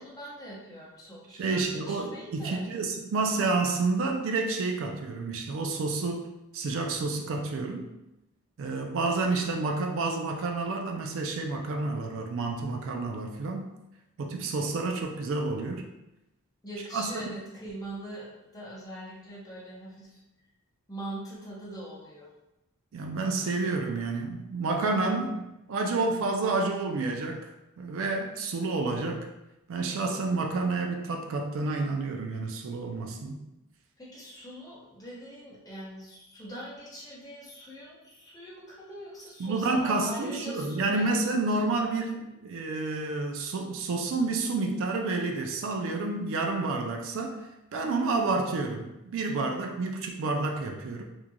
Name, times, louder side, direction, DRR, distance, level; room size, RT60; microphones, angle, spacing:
voice 1, 0.0-2.7 16.6-20.2 20.9-22.3 34.0-41.4, right 1 dB, 15° left, -6 dB, 0.7 m, -42 dB
voice 2, 1.4-7.9 8.6-13.7 14.2-15.8 16.9-17.3 22.9-27.5 27.8-29.3 29.7-33.4 39.4-51.0, right 3 dB, 60° right, 2 dB, 0.3 m, -29 dB
3.0 x 2.4 x 2.2 m, 0.92 s
head